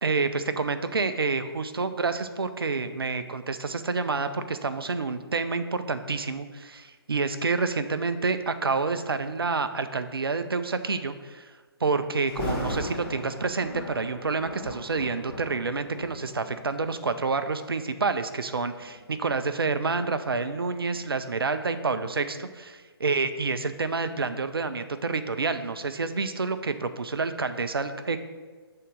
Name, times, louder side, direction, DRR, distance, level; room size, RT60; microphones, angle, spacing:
voice 1, 0.0-11.5 11.8-28.2, right 4 dB, 65° right, 10 dB, 0.6 m, -28 dB
Thunder, 12.3-17.2 17.9-18.1 18.8-21.6 21.9-22.0, left 1 dB, 10° left, 1.9 m, -37 dB
6.6 x 3.8 x 6.3 m, 1.4 s
figure-of-eight pair, 140°, 14 cm